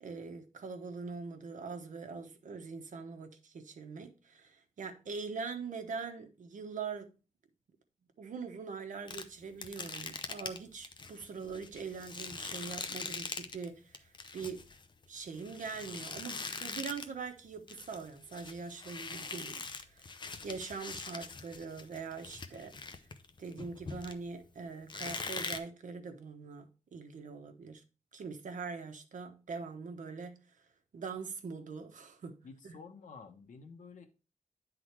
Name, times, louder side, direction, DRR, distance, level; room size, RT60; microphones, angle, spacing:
voice 1, 0.0-7.1 8.2-14.6 15.1-22.8 23.4-27.8 28.1-30.4 30.9-32.4 32.6-32.7, right 5 dB, 85° right, 1.1 m, -43 dB
sound 1, 9.1-13.7 13.9-17.2 17.5-24.4 24.9-25.6, left 4 dB, 40° left, 0.7 m, -42 dB
voice 2, 32.4-34.1, left 5 dB, 90° left, 1.3 m, -51 dB
9.8 x 3.9 x 4.6 m
wide cardioid pair, 160°, 13 cm